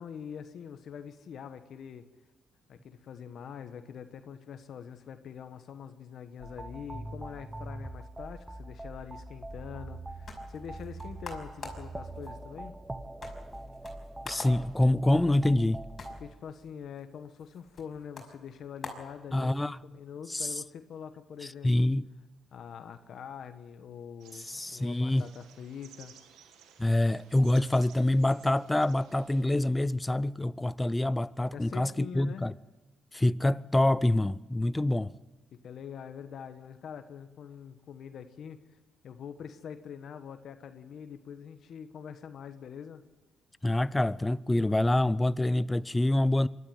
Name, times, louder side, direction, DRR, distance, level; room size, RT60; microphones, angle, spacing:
voice 1, 0.0-2.1 2.7-12.7 16.2-19.6 19.8-21.9 22.5-26.1 31.5-32.4 35.5-38.6 39.0-43.0, left 7 dB, 65° left, 1.2 m, -44 dB
sound 1, 6.4-16.3, right 2 dB, 10° right, 1.1 m, -42 dB
sound 2, 9.9-19.8, left 3 dB, 40° left, 5.6 m, -48 dB
voice 2, 14.3-15.8 19.3-19.8 20.3-20.5 21.6-22.1 24.4-25.3 26.8-32.5 33.1-35.1 43.6-46.5, left 1 dB, 15° left, 0.5 m, -26 dB
sound 3, 24.2-29.4, right 8 dB, 90° right, 1.9 m, -57 dB
24.0 x 12.5 x 9.3 m
cardioid pair, 90°, 0 cm